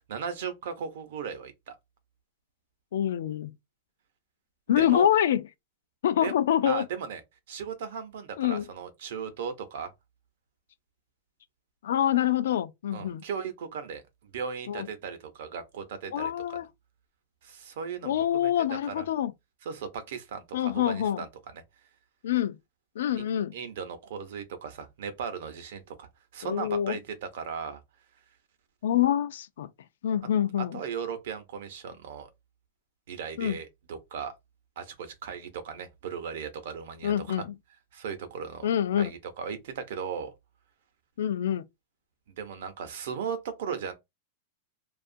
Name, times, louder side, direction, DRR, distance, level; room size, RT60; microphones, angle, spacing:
voice 1, 0.1-1.8 4.8-5.1 6.2-6.3 6.6-7.2 7.5-9.9 12.9-14.0 14.3-16.6 17.4-18.1 18.4-18.5 18.9-19.1 19.6-21.3 23.1-23.2 23.5-26.1 26.3-27.8 30.7-32.3 33.1-34.3 34.8-37.4 37.9-38.7 39.0-40.3 42.3-43.9, right 6 dB, 65° right, 0.7 m, -37 dB
voice 2, 2.9-3.5 4.7-5.4 6.0-6.8 8.4-8.7 11.8-13.2 14.7-14.9 16.1-16.7 18.0-19.3 20.5-21.2 22.2-22.6 23.0-23.5 26.4-27.0 28.8-29.7 30.0-30.8 33.4-33.6 37.0-37.5 38.6-39.1 41.2-41.6, left 10 dB, 85° left, 0.3 m, -26 dB
2.7 x 2.4 x 2.5 m
supercardioid pair, 170°, 0 cm